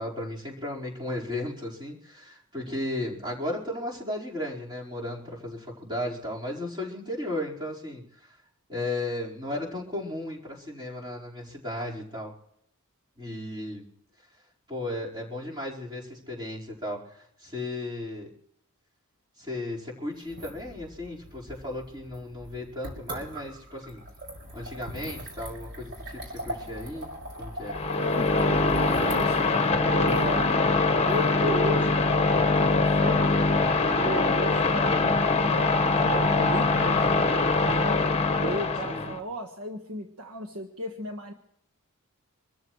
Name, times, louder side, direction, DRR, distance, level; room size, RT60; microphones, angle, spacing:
voice 1, 0.0-8.4 8.7-12.3 13.2-13.9 14.7-18.3 19.4-24.0 24.5-27.1 27.4-27.8 38.8-39.2, left 1 dB, 20° right, -4 dB, 4.7 m, -35 dB
sound 1, 20.2-32.1, equal, 55° right, 5.9 m, -41 dB
sound 2, 27.6-39.2, left 3 dB, 30° left, 1.4 m, -23 dB
voice 2, 28.0-30.6 31.0-33.3 33.9-38.0 38.4-41.3, right 1 dB, 70° right, 4 dB, 1.4 m, -35 dB
26.0 x 14.0 x 3.2 m, 0.73 s
head